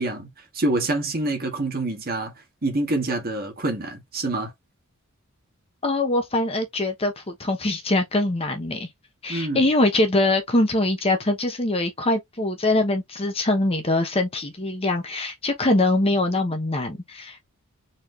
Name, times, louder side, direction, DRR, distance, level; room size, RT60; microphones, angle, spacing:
voice 1, 0.0-2.3 2.6-4.5 9.3-9.7, right 2 dB, 40° right, 1.6 m, -26 dB
voice 2, 5.8-8.9 9.2-17.4, left 2 dB, 25° left, 1.0 m, -23 dB
4.2 x 3.1 x 3.2 m
head